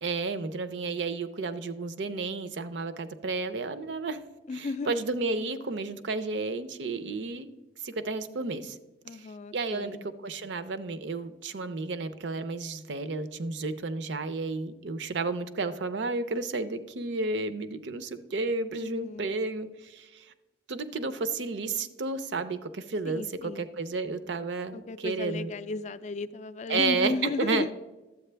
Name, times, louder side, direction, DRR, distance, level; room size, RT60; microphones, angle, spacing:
voice 1, 0.0-4.2 4.5-7.5 7.8-8.8 9.1-9.3 9.5-10.0 10.2-20.3 20.7-23.2 23.6-25.5 26.7-27.7, right 3 dB, 70° right, 0.6 m, -32 dB
voice 2, 4.5-5.0 9.0-10.1 18.7-19.3 23.0-23.7 24.7-27.7, left 3 dB, 40° left, 0.3 m, -34 dB
11.5 x 8.2 x 3.3 m
head